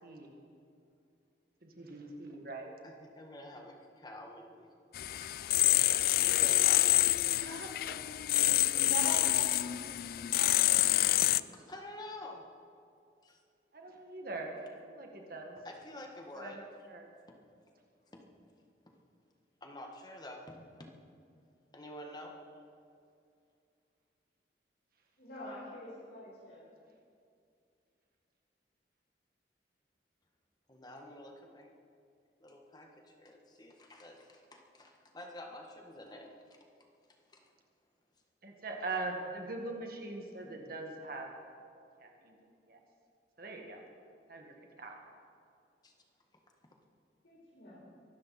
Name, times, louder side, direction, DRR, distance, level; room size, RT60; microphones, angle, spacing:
voice 1, 0.0-0.4 1.6-2.7 7.3-8.0 8.7-10.0 10.3-10.6 13.7-14.6 14.8-15.6 16.3-17.0 38.4-41.3 42.0-42.8 43.4-43.8 44.3-45.0, right 3 dB, 55° right, 1 dB, 1.9 m, -42 dB
voice 2, 2.8-4.7 5.2-5.3 6.2-7.3 10.8-12.5 13.2-13.4 15.6-16.7 17.3-17.4 18.1-18.2 19.6-20.9 21.7-22.4 30.7-31.7 32.4-36.3 37.3-37.5 45.8-45.9, left 1 dB, 25° left, 2 dB, 1.5 m, -49 dB
sound 1, 4.9-11.4, left 16 dB, 55° left, 0.3 m, -27 dB
voice 3, 25.2-26.7 47.2-47.8, left 1 dB, 70° left, -7 dB, 4.9 m, -48 dB
23.5 x 13.0 x 4.3 m, 2.4 s
head